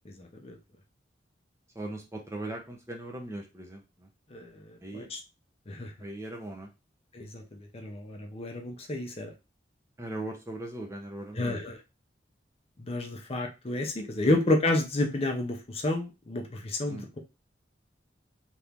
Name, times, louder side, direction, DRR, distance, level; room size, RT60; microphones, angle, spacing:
voice 1, 0.0-0.6 4.3-5.2 5.7-5.9 7.1-9.3 11.3-11.8 12.8-17.2, left 2 dB, 35° left, 3 dB, 0.6 m, -30 dB
voice 2, 1.8-3.8 4.8-5.1 6.0-6.7 10.0-11.6 14.2-14.3 16.9-17.1, right 1 dB, 15° right, 2 dB, 0.7 m, -39 dB
2.9 x 2.6 x 3.4 m, 0.26 s
head